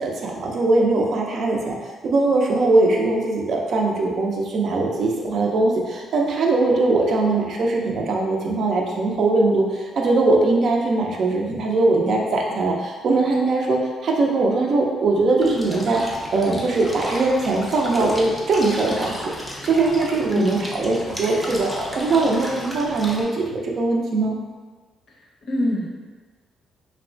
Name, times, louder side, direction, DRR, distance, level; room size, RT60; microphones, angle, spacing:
voice 1, 0.0-16.0 16.3-19.3 19.6-21.7 22.0-24.4, right 2 dB, 55° right, 0 dB, 0.4 m, -21 dB
sound 1, 15.4-23.2, equal, 5° left, 0.5 m, -33 dB
voice 2, 20.3-20.6 25.1-25.2 25.5-26.0, left 1 dB, 60° left, -2 dB, 0.5 m, -25 dB
2.8 x 2.1 x 2.6 m, 1.4 s
cardioid pair, 110°, 0 cm